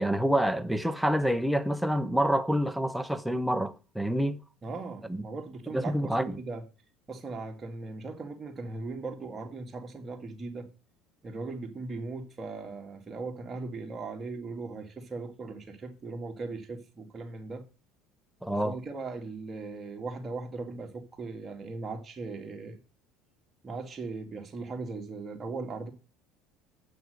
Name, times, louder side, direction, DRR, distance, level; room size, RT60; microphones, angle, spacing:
voice 1, 0.0-4.4 5.1-5.2 5.7-6.4 18.4-18.7, equal, ahead, 0.8 m, -27 dB
voice 2, 4.6-6.6 7.1-10.7 11.2-17.6 18.6-22.8 23.6-25.9, right 3 dB, 30° right, 2.0 m, -38 dB
7.7 x 6.0 x 6.4 m
supercardioid pair, 90°, 0 cm